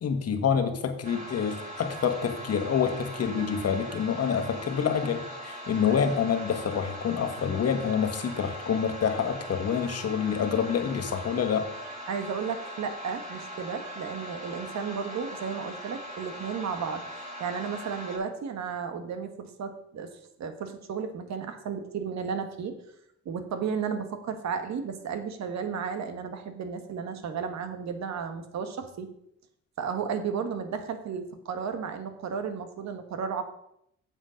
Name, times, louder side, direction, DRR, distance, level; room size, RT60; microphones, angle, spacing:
voice 1, 0.0-11.7, left 7 dB, 55° left, 6 dB, 1.4 m, -27 dB
sound 1, 1.0-18.2, equal, 25° right, 3.9 m, -41 dB
voice 2, 12.1-22.8 23.2-29.1 29.8-33.4, right 6 dB, 65° right, 8 dB, 1.4 m, -33 dB
7.8 x 7.3 x 5.1 m, 0.76 s
cardioid pair, 90°, 30 cm